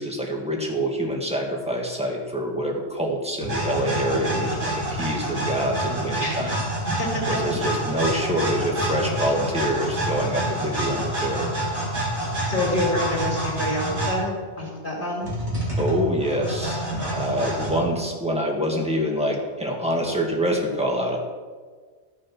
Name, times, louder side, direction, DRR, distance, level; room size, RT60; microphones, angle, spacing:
voice 1, 0.0-6.6 7.3-11.5 15.8-21.2, equal, 5° right, 0 dB, 1.7 m, -26 dB
sound 1, 3.4-14.2 15.2-17.8, right 1 dB, 75° right, 3.3 m, -27 dB
voice 2, 6.2-6.5 6.9-7.4 12.4-15.3, left 1 dB, 45° left, -3 dB, 2.9 m, -27 dB
14.0 x 6.5 x 6.0 m, 1.5 s
omnidirectional pair, 1.2 m